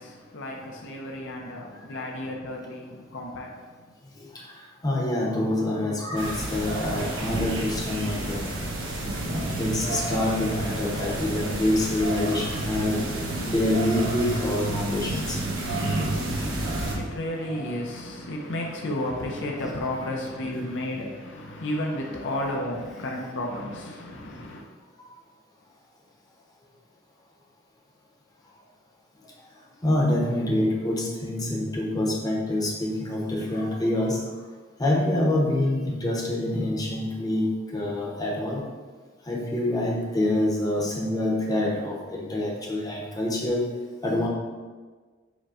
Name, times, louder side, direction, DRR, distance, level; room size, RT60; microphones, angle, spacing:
voice 1, 0.0-3.9 16.2-24.6, left 1 dB, 65° left, 0.6 m, -33 dB
voice 2, 4.8-8.5 9.3-13.0 13.5-15.4 17.4-17.7 19.5-19.7 29.8-34.2 34.8-38.6 39.3-43.6 44.0-44.3, left 1 dB, 20° left, 0.8 m, -26 dB
sound 1, 6.2-17.0, right 1 dB, 75° right, 1.1 m, -30 dB
5.0 x 2.2 x 4.8 m
head